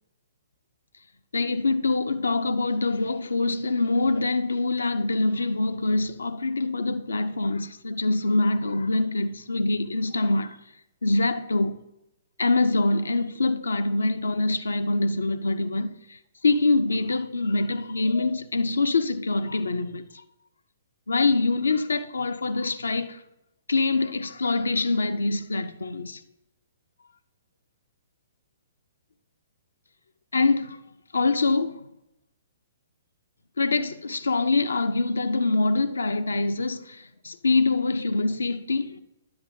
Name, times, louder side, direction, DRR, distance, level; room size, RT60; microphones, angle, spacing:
voice 1, 1.3-10.6 11.0-11.8 12.4-20.1 21.1-23.2 23.7-26.2 30.3-30.8 31.1-31.8 33.6-39.0, left 3 dB, 75° left, 0.5 m, -24 dB
10.0 x 7.8 x 2.6 m
figure-of-eight pair, 120°, 0 cm